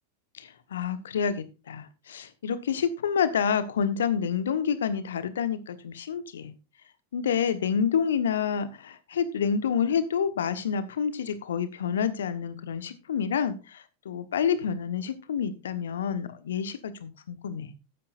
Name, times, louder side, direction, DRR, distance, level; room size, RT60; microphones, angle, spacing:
voice 1, 0.4-6.5 7.1-17.7, left 7 dB, 65° left, 13 dB, 1.2 m, -28 dB
13.5 x 9.9 x 2.5 m, 0.28 s
figure-of-eight pair, 90°, 0 cm